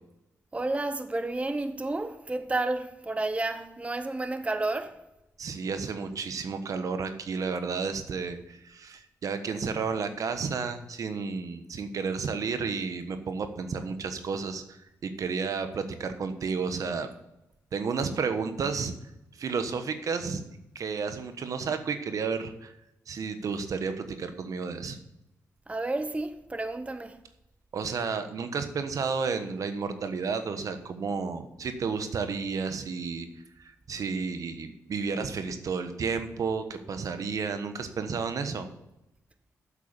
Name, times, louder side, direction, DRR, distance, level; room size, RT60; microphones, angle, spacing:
voice 1, 0.5-5.0 25.7-27.2, right 2 dB, 20° right, 0.9 m, -31 dB
voice 2, 5.4-17.1 17.7-18.9 19.3-20.4 20.7-22.7 23.1-25.0 27.7-33.3 33.6-38.7, right 5 dB, 65° right, 1.2 m, -32 dB
8.3 x 7.6 x 7.2 m
cardioid pair, 60°, 6 cm